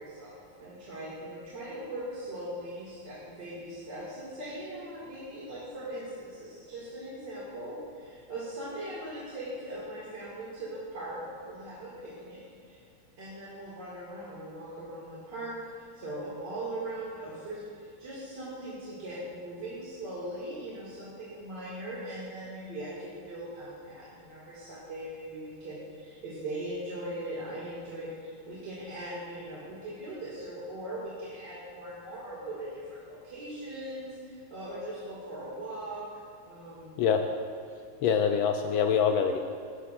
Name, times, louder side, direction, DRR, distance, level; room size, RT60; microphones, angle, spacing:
voice 1, 0.0-12.8 13.2-36.1 36.5-37.0, right 1 dB, 55° right, -9 dB, 2.9 m, -40 dB
voice 2, 38.0-39.4, left 7 dB, 75° left, 5 dB, 1.4 m, -25 dB
16.5 x 13.0 x 2.6 m, 2.5 s
omnidirectional pair, 2.3 m